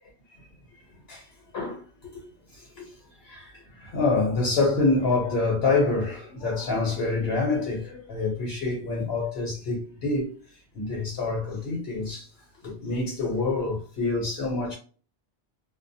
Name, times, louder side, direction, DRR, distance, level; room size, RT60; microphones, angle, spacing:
voice 1, 1.5-2.2 2.5-2.9 3.2-10.4 10.7-12.3 12.6-14.7, left 3 dB, 70° left, 1.0 m, -27 dB
2.3 x 2.1 x 2.6 m
omnidirectional pair, 1.1 m